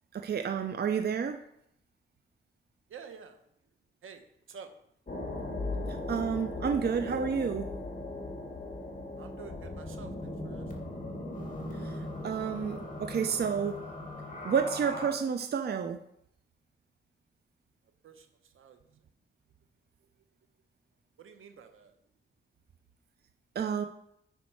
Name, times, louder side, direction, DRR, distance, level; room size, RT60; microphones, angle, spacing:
voice 1, 0.1-1.4 6.1-7.7 11.8-12.0 12.2-13.8 14.4-16.0 23.6-23.8, right 6 dB, 55° right, 7 dB, 0.6 m, -30 dB
voice 2, 2.9-3.4 4.0-4.7 9.2-10.7 18.0-18.8 21.2-21.9, right 6 dB, 85° right, 6 dB, 1.0 m, -49 dB
sound 1, 5.1-15.1, left 2 dB, 40° left, 2.0 m, -38 dB
8.4 x 5.3 x 4.7 m, 0.74 s
cardioid pair, 85°, 20 cm